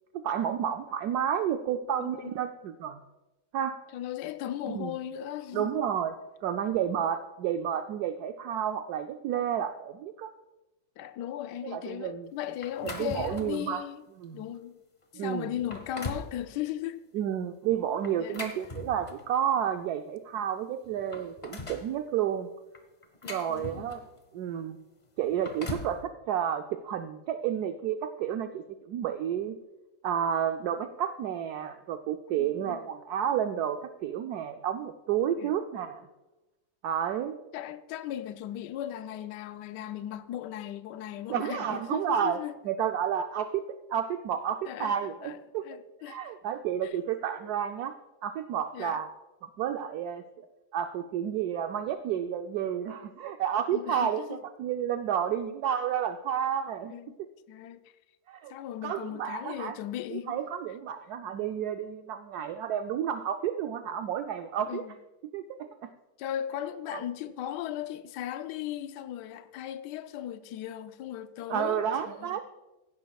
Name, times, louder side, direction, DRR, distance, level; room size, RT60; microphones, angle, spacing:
voice 1, 0.1-3.0 3.5-3.8 4.7-4.9 5.5-6.1 6.4-10.3 11.6-12.3 12.8-13.8 14.2-14.4 15.1-15.5 17.1-22.5 23.3-24.0 24.3-24.8 25.2-29.6 30.0-36.1 36.8-37.4 41.3-42.4 42.6-45.6 46.1-47.9 48.2-49.1 49.4-50.5 50.7-56.9 58.3-58.5 58.8-59.8 60.1-64.8 65.3-65.4 65.8-65.9 66.9-67.0 71.5-72.4, right 9 dB, 75° right, 0.9 m, -31 dB
voice 2, 2.0-2.3 3.9-5.8 11.0-14.0 14.3-14.8 15.1-17.0 18.2-18.4 23.2-23.8 32.4-32.8 35.4-35.5 37.5-42.6 44.6-45.4 45.6-46.3 46.8-46.9 48.7-49.0 53.7-54.4 56.8-57.2 57.5-57.8 58.5-60.4 64.7-64.9 66.2-72.4, left 11 dB, 70° left, 1.1 m, -37 dB
sound 1, 12.6-13.7 14.2-14.4 15.0-15.1 15.5-16.3 18.0-19.4 20.4-20.5 20.8-21.9 22.7-24.2 25.2-26.0, left 2 dB, 30° left, 0.8 m, -40 dB
16.0 x 10.5 x 2.3 m
omnidirectional pair, 2.1 m